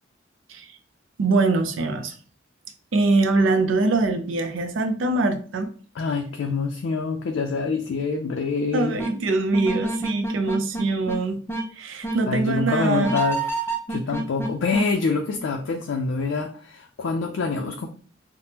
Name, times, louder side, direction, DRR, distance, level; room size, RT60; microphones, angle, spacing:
voice 1, 1.2-2.1 2.9-5.7 8.7-11.4 11.7-13.1, right 3 dB, 90° right, 6 dB, 0.5 m, -23 dB
voice 2, 6.0-9.0 12.3-13.4 13.9-17.9, left 4 dB, 80° left, 2 dB, 0.4 m, -26 dB
sound 1, 9.0-9.1 9.5-11.2 11.5-11.7 12.0-12.2 13.0-14.8, right 3 dB, 10° left, 0.4 m, -27 dB
3.3 x 2.0 x 2.8 m, 0.41 s
head